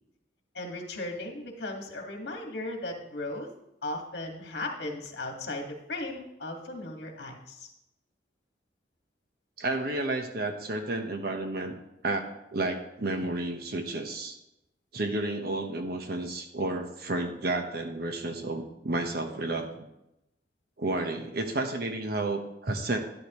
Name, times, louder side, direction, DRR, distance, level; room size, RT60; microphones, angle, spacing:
voice 1, 0.5-3.5 3.8-7.7, left 2 dB, 65° left, 2 dB, 1.9 m, -36 dB
voice 2, 9.6-11.7 12.0-14.4 14.9-19.9 20.8-23.0, right 2 dB, 55° right, 5 dB, 1.1 m, -31 dB
11.5 x 11.0 x 3.1 m, 0.87 s
head